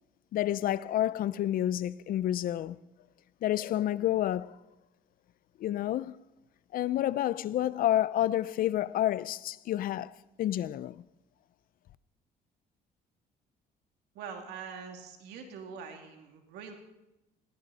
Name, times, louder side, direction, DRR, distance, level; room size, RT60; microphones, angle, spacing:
voice 1, 0.3-2.8 3.4-4.6 5.6-6.2 6.7-10.1 10.4-11.0, left 12 dB, 60° left, 0.6 m, -29 dB
voice 2, 14.1-16.7, right 6 dB, 85° right, 2.7 m, -44 dB
20.5 x 15.5 x 4.2 m
cardioid pair, 110°, 17 cm